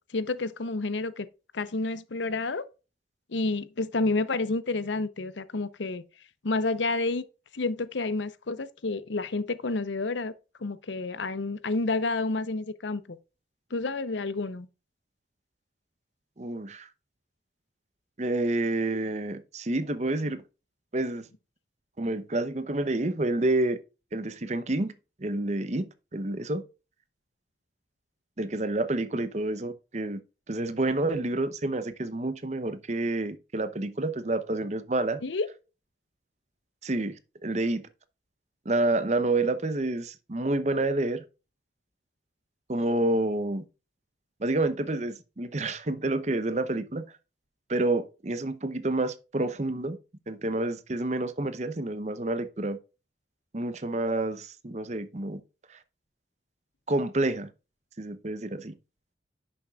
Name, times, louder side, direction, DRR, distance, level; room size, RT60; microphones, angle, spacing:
voice 1, 0.1-1.3 1.5-2.7 3.3-6.0 6.4-7.2 7.5-10.3 10.6-13.2 13.7-14.7 35.2-35.5, left 3 dB, 85° left, 0.7 m, -29 dB
voice 2, 16.4-16.9 18.2-20.4 20.9-21.3 22.0-23.8 24.1-24.9 25.2-26.6 28.4-30.2 30.5-35.2 36.8-37.8 38.7-41.2 42.7-43.6 44.4-47.0 47.7-50.0 50.3-52.8 53.5-55.4 55.7-55.8 56.9-57.5 58.0-58.7, right 2 dB, 40° right, 0.7 m, -28 dB
10.5 x 7.0 x 2.4 m
head